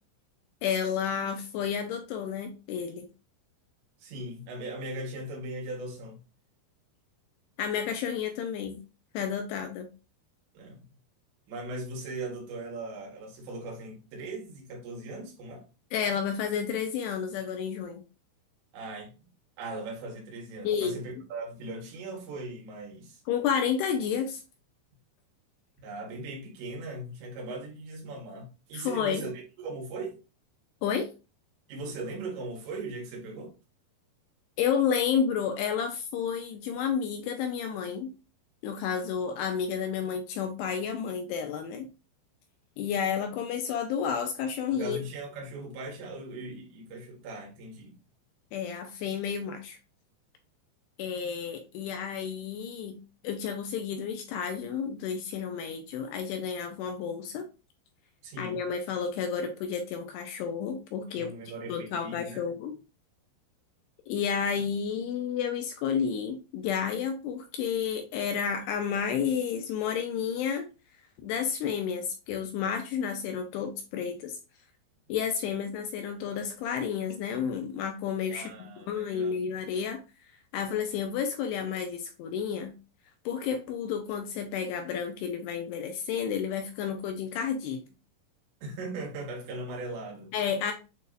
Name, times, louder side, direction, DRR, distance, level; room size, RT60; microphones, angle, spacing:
voice 1, 0.6-3.1 7.6-8.8 9.1-9.9 15.9-18.0 20.6-21.0 23.3-24.4 28.7-29.3 30.8-31.1 34.6-38.1 38.6-41.9 42.8-45.0 48.5-49.8 51.0-57.5 58.4-61.3 61.7-62.8 64.1-70.7 71.2-74.4 75.1-80.0 80.5-82.7 83.3-87.8 90.3-90.7, left 7 dB, 80° left, 2.4 m, -31 dB
voice 2, 4.0-6.2 10.6-10.8 11.5-15.6 18.7-19.1 19.6-23.2 25.8-30.2 31.7-33.5 44.7-48.0 58.2-58.6 61.1-62.4 78.3-79.4 88.6-90.3, right 2 dB, 80° right, 3.7 m, -39 dB
8.1 x 2.7 x 2.3 m
omnidirectional pair, 5.1 m